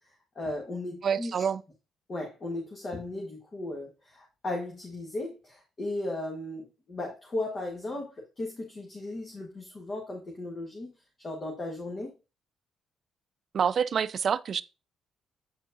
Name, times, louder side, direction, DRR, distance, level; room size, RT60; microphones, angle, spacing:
voice 1, 0.3-1.5 2.1-10.9 11.2-12.1, left 2 dB, 40° left, 1.4 m, -36 dB
voice 2, 1.0-1.6 13.5-14.6, right 7 dB, 50° right, 0.4 m, -27 dB
8.3 x 4.5 x 2.6 m
cardioid pair, 90°, 0 cm